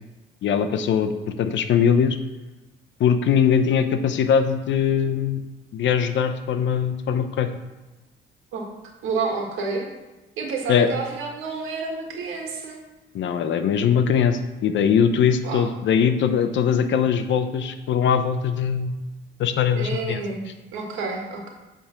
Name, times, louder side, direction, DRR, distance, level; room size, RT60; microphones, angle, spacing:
voice 1, 0.4-2.2 3.0-5.4 5.7-7.5 10.7-10.9 13.1-18.9 19.4-20.2, left 7 dB, 70° left, 9 dB, 0.7 m, -21 dB
voice 2, 8.5-9.8 10.4-12.8 15.4-15.6 19.7-21.5, right 4 dB, 85° right, 1 dB, 1.7 m, -29 dB
8.5 x 3.7 x 5.7 m, 1.1 s
cardioid pair, 90°, 20 cm